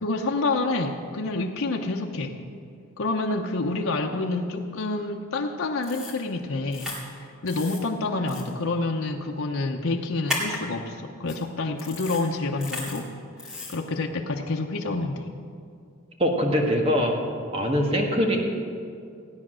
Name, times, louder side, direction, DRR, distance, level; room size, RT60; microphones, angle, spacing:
voice 1, 0.0-2.4 3.0-6.9 7.4-13.1 13.4-15.3, left 3 dB, 85° left, 1 dB, 0.9 m, -28 dB
sound 1, 5.8-6.2 6.7-7.0 7.5-7.8 8.3-8.4 10.3-10.6 11.3-11.4 11.8-12.2 12.6-13.0 13.4-13.8, left 2 dB, 5° right, 2.1 m, -34 dB
voice 2, 16.2-17.2 17.5-18.4, equal, 30° right, 1 dB, 1.6 m, -22 dB
16.0 x 9.7 x 6.3 m, 2.4 s
head